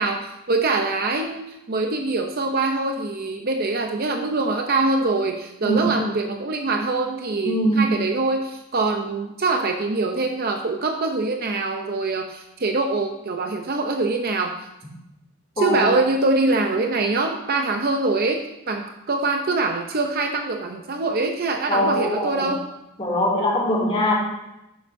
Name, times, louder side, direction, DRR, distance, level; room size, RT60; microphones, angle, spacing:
voice 1, 0.0-14.5 15.6-22.6, right 3 dB, 45° right, 4 dB, 0.7 m, -24 dB
voice 2, 7.4-7.9 15.6-15.9 21.7-22.5 23.0-24.2, equal, 30° left, -3 dB, 2.6 m, -22 dB
12.0 x 9.6 x 2.7 m, 0.92 s
head